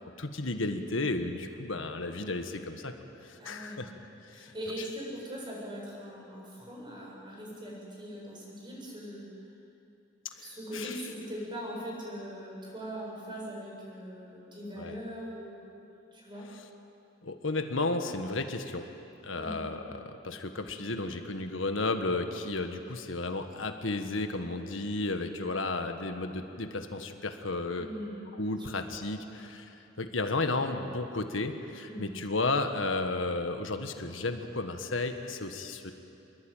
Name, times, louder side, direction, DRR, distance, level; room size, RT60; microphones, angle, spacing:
voice 1, 0.2-2.9 3.2-3.9 4.3-4.5 10.7-11.0 14.8-14.9 17.2-18.9 19.2-27.9 28.4-35.9, left 2 dB, 80° left, 6 dB, 1.6 m, -33 dB
voice 2, 3.4-3.8 4.3-9.2 10.4-15.8 16.1-16.5 19.3-19.6 27.8-28.8 31.8-32.1, equal, 25° right, -3 dB, 7.8 m, -41 dB
27.0 x 22.0 x 9.1 m, 2.8 s
head